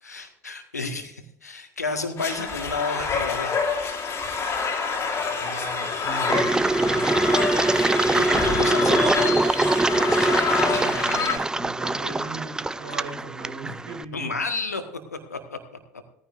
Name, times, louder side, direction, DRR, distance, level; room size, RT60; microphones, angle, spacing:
voice 1, 0.0-3.6 7.1-7.2 8.0-9.3 14.1-14.8 15.1-15.6, left 3 dB, 80° left, 7 dB, 1.6 m, -31 dB
sound 1, 2.2-11.4, left 5 dB, 30° left, 2.6 m, -27 dB
voice 2, 5.2-7.1 10.6-14.4, right 3 dB, 65° right, 0 dB, 4.1 m, -38 dB
Engine, 6.3-14.0, right 2 dB, 10° right, 0.4 m, -23 dB
18.0 x 14.5 x 2.6 m, 0.74 s
figure-of-eight pair, 70°, 9 cm